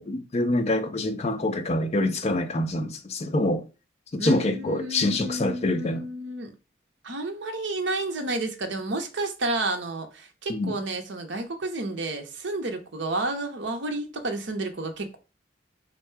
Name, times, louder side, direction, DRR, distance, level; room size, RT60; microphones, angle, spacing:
voice 1, 0.0-3.6 4.1-6.1 10.5-10.7, left 1 dB, 30° left, 0.4 m, -26 dB
voice 2, 4.2-6.5 7.0-15.2, right 2 dB, 60° right, 0.7 m, -31 dB
3.6 x 2.2 x 4.4 m
head